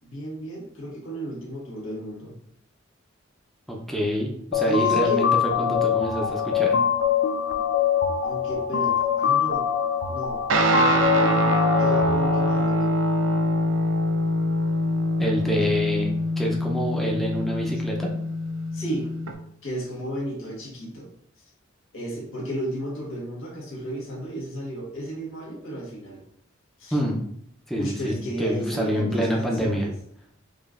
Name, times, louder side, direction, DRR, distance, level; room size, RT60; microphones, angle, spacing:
voice 1, 0.0-2.4 4.7-5.2 8.2-9.7 10.1-10.4 10.7-13.0 15.6-15.8 18.7-19.1 19.6-21.1 21.4-21.5 21.9-26.2 26.8-27.0 27.8-29.9, right 1 dB, 90° left, -3 dB, 1.4 m, -33 dB
voice 2, 3.7-5.3 5.6-6.7 15.2-18.1 26.9-27.2 27.7-29.9, equal, ahead, -2 dB, 0.5 m, -27 dB
sound 1, 4.5-12.5, left 8 dB, 60° left, 0.3 m, -23 dB
Guitar, 10.5-19.3, equal, 80° right, 0.5 m, -24 dB
5.0 x 2.5 x 2.4 m, 0.69 s
head